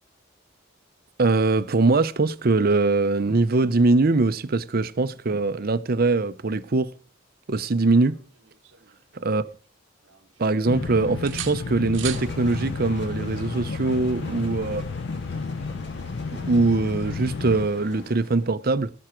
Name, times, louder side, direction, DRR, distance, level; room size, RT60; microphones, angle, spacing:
voice 1, 1.2-6.9 7.5-8.2 9.2-9.5 10.4-14.8 16.3-18.9, right 3 dB, 50° right, 0.7 m, -22 dB
sound 1, 8.1-9.7 10.0-10.8 11.2-12.3 14.2-14.4, right 12 dB, 70° right, 1.1 m, -39 dB
sound 2, 10.7-17.7, left 4 dB, 80° left, 0.5 m, -32 dB
sound 3, 12.0-18.5, left 1 dB, 60° left, 3.0 m, -41 dB
18.0 x 6.1 x 4.5 m
head